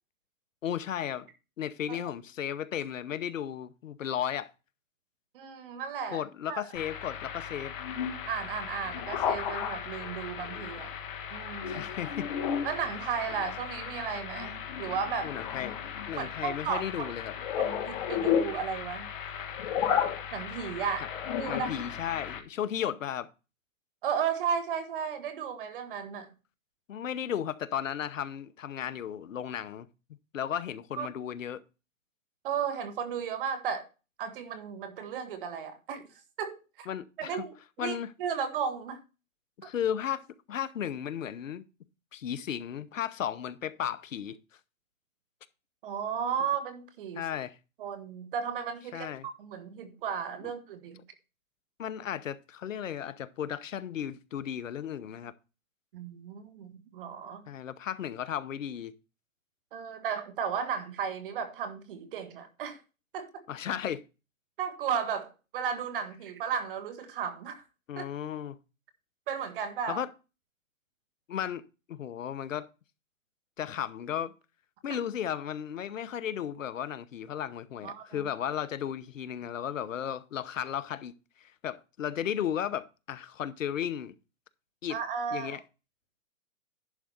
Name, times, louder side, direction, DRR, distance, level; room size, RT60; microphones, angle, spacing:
voice 1, 0.6-1.3 1.6-4.5 6.1-7.7 11.7-12.3 15.2-15.8 16.1-17.3 21.5-23.3 26.9-29.9 30.3-31.6 36.9-37.4 37.8-38.1 39.6-41.6 42.1-44.4 47.1-47.6 48.9-49.3 51.8-55.3 57.5-58.9 63.5-64.0 67.9-68.6 69.9-70.1 71.3-71.6 71.9-72.7 73.6-74.3 74.8-81.1 81.4-84.1 84.8-85.0 85.3-85.6, left 9 dB, 65° left, 0.9 m, -34 dB
voice 2, 5.3-6.2 6.5-6.6 8.3-10.9 11.3-11.8 12.6-15.3 16.1-17.1 17.6-19.1 20.3-21.1 21.4-21.7 24.0-26.3 31.0-31.1 32.4-33.9 34.2-36.1 36.4-36.9 37.2-39.0 45.8-47.3 47.8-49.1 49.4-51.0 55.9-57.4 59.7-62.8 63.1-63.4 64.6-67.6 68.0-68.1 69.3-70.0 74.9-75.0 77.8-78.2 84.9-85.6, right 7 dB, 40° right, 1.5 m, -34 dB
sound 1, 6.7-22.4, left 8 dB, 40° left, 1.5 m, -34 dB
11.0 x 3.7 x 6.6 m
hypercardioid pair, 150°, 41 cm